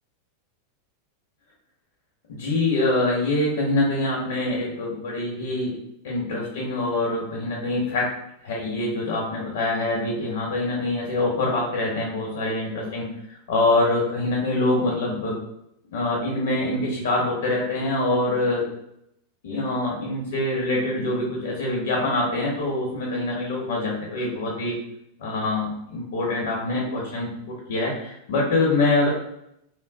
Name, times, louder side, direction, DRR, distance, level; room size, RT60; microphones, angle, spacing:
voice 1, 2.3-5.8 6.0-8.1 8.4-15.4 15.9-18.7 19.4-24.8 25.2-29.1, left 2 dB, 80° left, -3 dB, 0.9 m, -25 dB
3.0 x 2.1 x 3.5 m, 0.79 s
supercardioid pair, 150°, 0 cm